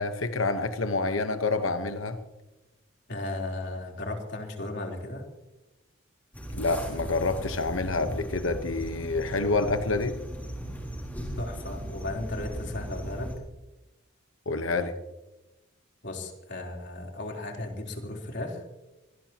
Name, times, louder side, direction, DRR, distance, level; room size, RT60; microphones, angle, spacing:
voice 1, 0.0-2.2 6.5-10.1 14.5-15.0, left 3 dB, 80° left, 8 dB, 1.2 m, -28 dB
voice 2, 3.1-5.3 11.4-13.3 16.0-18.6, left 2 dB, 60° left, 1 dB, 3.8 m, -35 dB
sound 1, 6.3-13.4, right 1 dB, 10° left, 6.1 m, -37 dB
25.0 x 19.0 x 3.0 m, 1.0 s
head